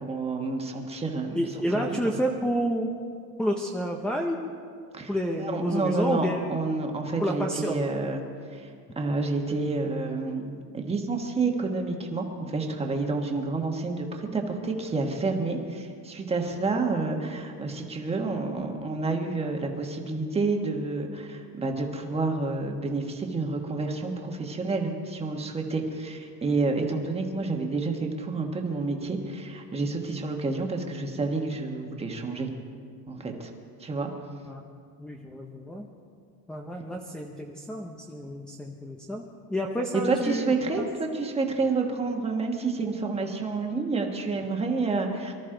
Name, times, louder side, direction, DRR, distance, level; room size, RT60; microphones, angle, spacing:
voice 1, 0.0-1.4 1.7-2.0 4.9-5.1 5.4-8.2 8.5-8.7 9.0-32.5 33.1-33.5 33.8-34.1 39.9-45.3, right 3 dB, 15° right, 2 dB, 1.3 m, -29 dB
voice 2, 1.3-2.9 3.4-4.4 5.1-6.4 7.2-7.8 34.5-34.6 35.0-35.9 36.5-39.2 39.5-40.9, equal, ahead, 1 dB, 0.6 m, -29 dB
24.0 x 13.0 x 3.8 m, 2.2 s
cardioid pair, 165°, 44 cm